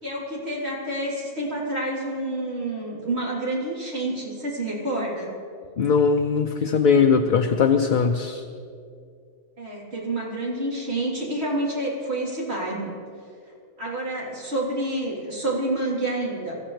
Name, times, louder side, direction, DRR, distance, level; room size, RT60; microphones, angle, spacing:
voice 1, 0.0-5.3 9.6-12.9 13.8-16.6, right 1 dB, 65° right, -5 dB, 3.8 m, -28 dB
voice 2, 5.8-8.4, left 5 dB, 55° left, 5 dB, 0.7 m, -20 dB
23.5 x 15.0 x 3.3 m, 2.4 s
omnidirectional pair, 1.1 m